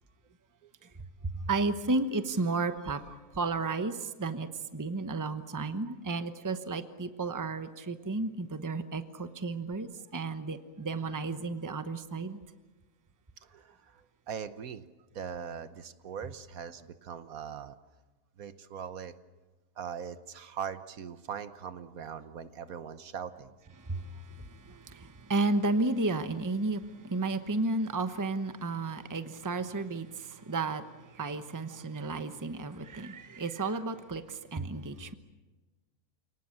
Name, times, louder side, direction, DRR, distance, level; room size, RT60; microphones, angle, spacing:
voice 1, 1.2-12.4 23.8-35.2, right 3 dB, 15° right, 10 dB, 0.9 m, -33 dB
voice 2, 14.3-14.8 15.1-17.8 18.4-19.1 19.8-23.5, right 7 dB, 70° right, 12 dB, 1.4 m, -40 dB
29.0 x 18.5 x 8.7 m, 1.2 s
omnidirectional pair, 1.6 m